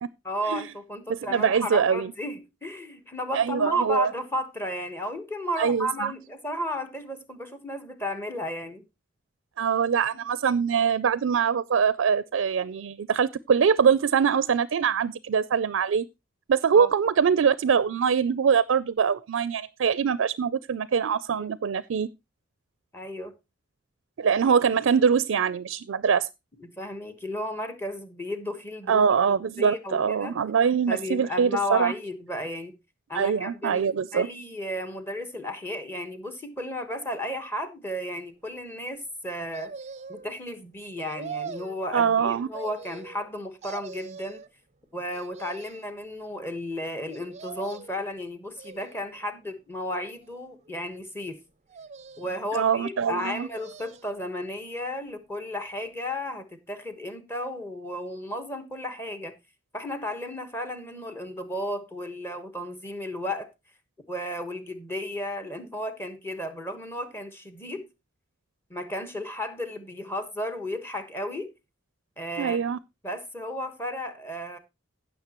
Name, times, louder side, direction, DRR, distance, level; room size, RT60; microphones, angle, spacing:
voice 1, 0.2-8.8 10.1-10.2 16.7-16.9 22.9-23.3 26.6-30.4 30.9-32.7 33.1-39.7 40.1-44.4 44.9-51.4 52.2-59.3 59.7-63.5 64.1-67.8 68.7-71.5 72.2-72.6 73.0-74.6, left 1 dB, 10° left, 1.2 m, -34 dB
voice 2, 1.1-2.1 3.3-4.1 5.6-6.1 9.6-16.1 16.5-22.1 24.2-26.3 28.9-31.9 33.1-34.3 41.9-42.5 52.5-53.5 72.4-72.8, right 6 dB, 85° right, 0.4 m, -23 dB
sound 1, 39.5-40.3 41.0-41.8 42.5-43.3 43.6-44.5 45.1-45.9 47.1-48.0 48.6-49.3 49.9-50.7 51.7-52.5 53.2-54.2 54.6-54.7, right 5 dB, 35° right, 0.5 m, -42 dB
16.0 x 6.4 x 3.0 m
head